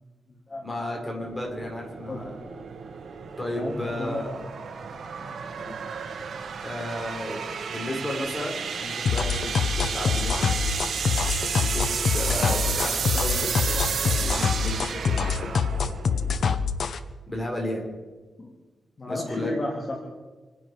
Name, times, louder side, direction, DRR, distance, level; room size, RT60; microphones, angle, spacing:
voice 1, 0.6-2.4 3.4-4.3 6.6-10.4 11.5-15.7 17.3-17.8 19.1-19.5, left 1 dB, 20° left, 0 dB, 5.3 m, -33 dB
sound 1, 1.2-16.6, right 6 dB, 70° right, 1.6 m, -32 dB
voice 2, 2.1-2.5 3.6-4.2 5.2-5.7 10.9-11.0 18.4-18.5 19.0-20.0, left 2 dB, 35° left, 0 dB, 2.5 m, -33 dB
sound 2, 9.1-17.0, left 6 dB, 65° left, 0.9 m, -25 dB
27.0 x 11.0 x 4.9 m, 1.3 s
cardioid pair, 100°, 0 cm